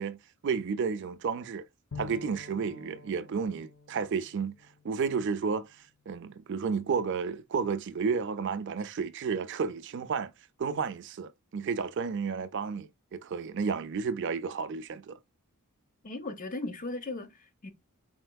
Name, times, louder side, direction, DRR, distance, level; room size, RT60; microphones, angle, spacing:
voice 1, 0.0-1.6 2.0-4.6 4.8-5.7 6.1-10.3 10.6-15.2, right 5 dB, 55° right, 0.4 m, -32 dB
Bowed string instrument, 1.9-5.6, left 4 dB, 85° left, 1.2 m, -48 dB
voice 2, 16.0-17.7, left 2 dB, 40° left, 0.8 m, -37 dB
4.3 x 4.3 x 2.3 m
head